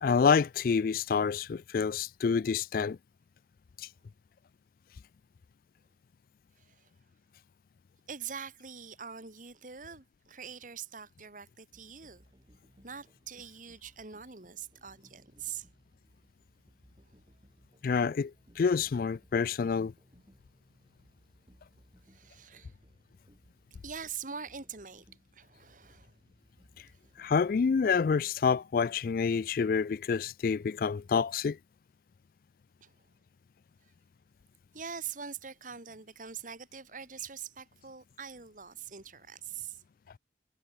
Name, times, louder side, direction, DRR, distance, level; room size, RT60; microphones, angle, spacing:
voice 1, 0.0-3.0 17.8-18.3 18.6-19.9 27.2-31.6, left 5 dB, 55° left, 0.3 m, -27 dB
voice 2, 6.6-6.9 8.1-12.2 12.8-15.7 22.1-22.7 23.8-25.0 25.3-26.1 32.8-32.9 34.7-39.8, right 7 dB, 45° right, 2.0 m, -43 dB
Insects Of Saturn, 11.7-27.6, equal, 25° right, 7.1 m, -63 dB
head